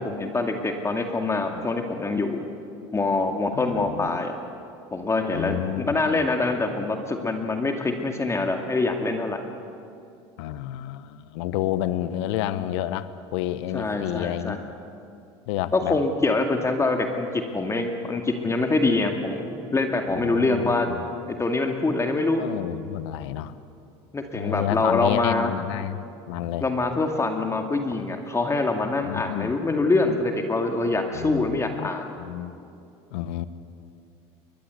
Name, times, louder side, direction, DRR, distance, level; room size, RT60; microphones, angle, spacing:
voice 1, 0.0-2.4 2.9-4.4 4.9-9.4 13.7-14.6 15.7-20.9 21.3-22.5 24.1-25.5 26.6-32.1, left 3 dB, 20° left, 4 dB, 2.2 m, -25 dB
voice 2, 3.5-4.2 5.3-6.2 10.4-14.6 15.5-16.0 20.2-21.0 22.4-23.6 24.3-26.0 26.3-26.6 29.0-29.5 31.1-32.5 33.1-33.4, left 12 dB, 80° left, 14 dB, 1.0 m, -30 dB
22.5 x 20.0 x 8.3 m, 2.5 s
supercardioid pair, 100°, 15 cm